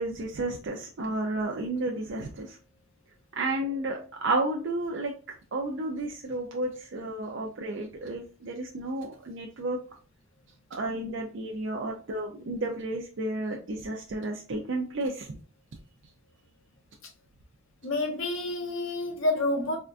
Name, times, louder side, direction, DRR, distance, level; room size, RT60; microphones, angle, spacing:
voice 1, 0.0-2.6 3.4-5.1 5.5-9.8 10.7-15.4, right 2 dB, 60° right, 0.5 m, -32 dB
voice 2, 17.8-19.8, left 2 dB, 70° left, 0.9 m, -28 dB
3.6 x 2.2 x 2.4 m
head